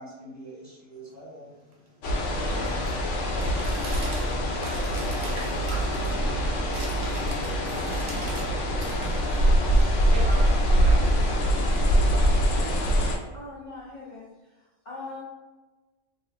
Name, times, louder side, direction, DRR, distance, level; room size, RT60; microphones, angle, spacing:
voice 1, 0.0-3.7, right 1 dB, 15° right, -8 dB, 1.0 m, -48 dB
sound 1, 1.1-8.5 8.8-11.0, right 3 dB, 85° right, 1.0 m, -44 dB
sound 2, 2.0-13.2, equal, 75° left, 0.9 m, -24 dB
voice 2, 10.1-13.0, right 1 dB, 65° right, -4 dB, 0.7 m, -40 dB
voice 3, 13.3-14.3 14.5-15.2, left 2 dB, 55° left, -6 dB, 0.5 m, -41 dB
2.8 x 2.4 x 2.5 m, 1.2 s
omnidirectional pair, 1.3 m